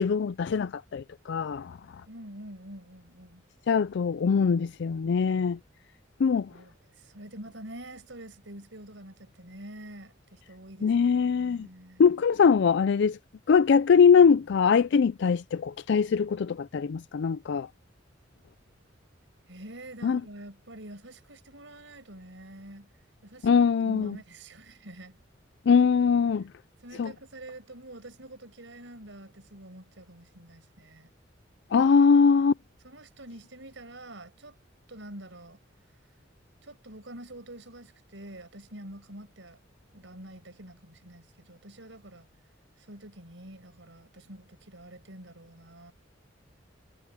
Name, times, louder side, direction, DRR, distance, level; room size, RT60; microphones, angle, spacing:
voice 1, 0.0-1.8 3.7-5.6 6.2-6.5 10.8-11.7 12.0-13.2 13.5-17.7 20.0-20.2 23.4-24.2 25.7-26.5 27.0-27.1 31.7-32.5, left 6 dB, 65° left, 0.4 m, -22 dB
voice 2, 2.1-3.4 6.5-12.0 19.5-22.9 23.2-25.2 26.8-31.1 31.8-31.9 32.8-34.5 34.9-35.6 36.6-39.6 39.9-42.3 42.8-45.9, right 1 dB, 75° right, 5.6 m, -46 dB
head